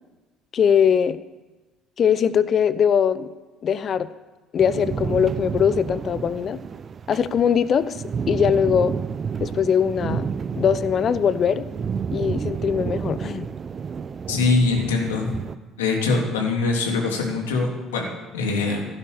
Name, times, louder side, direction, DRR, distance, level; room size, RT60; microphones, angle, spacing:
voice 1, 0.5-1.2 2.0-3.3 3.6-4.1 4.5-6.6 7.1-7.9 8.3-8.9 9.4-10.3 10.6-11.7 12.1-13.5, left 8 dB, 45° left, 15 dB, 0.9 m, -21 dB
sound 1, 4.6-15.6, right 6 dB, 40° right, 0.6 m, -30 dB
voice 2, 14.3-15.3 15.8-18.9, left 3 dB, 80° left, 0 dB, 3.3 m, -23 dB
16.0 x 11.0 x 6.9 m, 1.2 s
hypercardioid pair, 60°, 0 cm